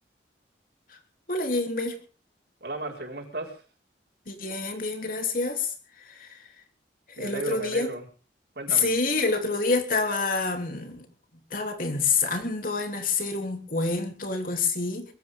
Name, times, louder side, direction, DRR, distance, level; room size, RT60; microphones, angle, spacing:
voice 1, 1.3-1.9 4.3-5.7 6.1-6.4 7.2-7.9 8.7-11.0 11.5-15.0, left 4 dB, 50° left, 4 dB, 3.3 m, -27 dB
voice 2, 2.6-3.6 7.2-8.1 8.5-8.9, right 2 dB, 70° right, 0 dB, 4.9 m, -35 dB
22.0 x 15.5 x 3.7 m, 0.38 s
head